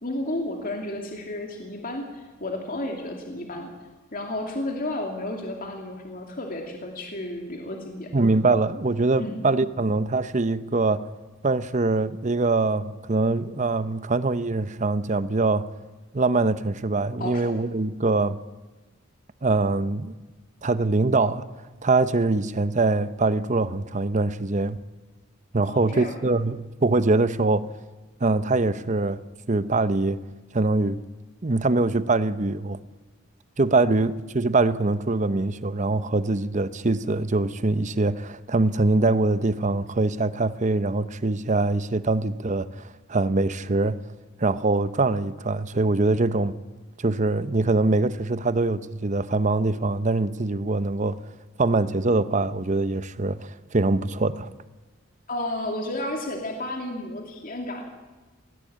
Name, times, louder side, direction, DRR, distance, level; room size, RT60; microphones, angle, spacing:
voice 1, 0.0-8.3 9.2-9.4 17.2-17.5 25.6-26.1 55.3-57.8, left 1 dB, 45° left, 2.6 m, -32 dB
voice 2, 8.1-11.1 11.4-15.7 16.1-18.4 19.4-20.1 20.6-21.4 21.8-24.8 25.5-27.7 28.2-29.2 29.5-30.2 30.5-31.0 31.4-32.8 33.6-44.0 44.4-46.6 47.0-51.2 51.6-54.5, right 3 dB, 35° right, 0.8 m, -23 dB
21.5 x 17.0 x 8.7 m
head